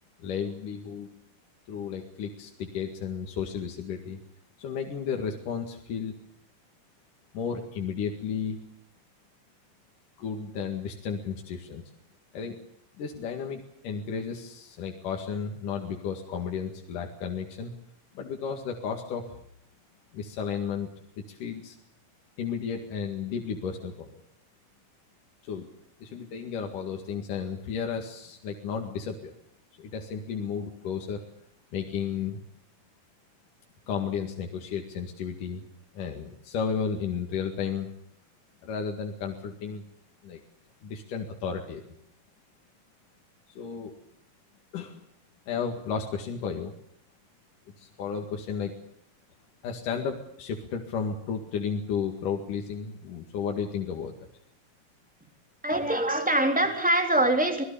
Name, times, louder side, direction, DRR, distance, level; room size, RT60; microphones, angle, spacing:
voice 1, 0.2-1.1 1.7-4.2 4.6-6.2 7.3-8.7 10.2-11.8 12.3-12.6 13.0-17.7 18.2-19.3 20.1-20.9 21.2-21.8 22.4-24.2 25.4-25.7 26.0-29.3 29.8-31.2 31.7-32.4 33.9-35.6 35.9-37.9 38.6-39.8 40.2-40.4 40.8-41.8 43.6-43.9 44.7-45.0 45.5-46.7 47.8-48.8 49.6-54.3, left 6 dB, 75° left, 2 dB, 3.6 m, -33 dB
voice 2, 55.6-57.6, right 1 dB, 5° right, 5 dB, 3.0 m, -24 dB
26.0 x 20.0 x 7.0 m, 0.69 s
omnidirectional pair, 3.8 m